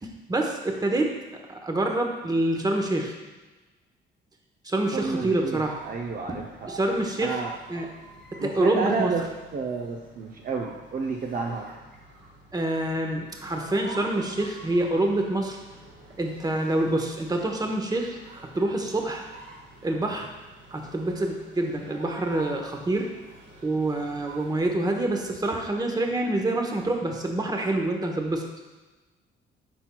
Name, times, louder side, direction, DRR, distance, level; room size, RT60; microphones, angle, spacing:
voice 1, 0.0-3.1 4.6-5.8 6.3-6.4 6.7-7.4 7.7-8.0 8.3-9.1 12.5-15.6 16.2-19.2 19.8-20.3 20.7-23.1 23.6-28.5, right 2 dB, 20° right, 2 dB, 0.9 m, -26 dB
voice 2, 4.9-6.7 7.2-7.5 8.4-9.3 9.5-11.7, right 4 dB, 45° right, 0 dB, 0.6 m, -30 dB
sound 1, 5.1-24.7, right 2 dB, 70° right, 1.5 m, -47 dB
9.8 x 4.5 x 2.2 m, 1.2 s
cardioid pair, 90°, 20 cm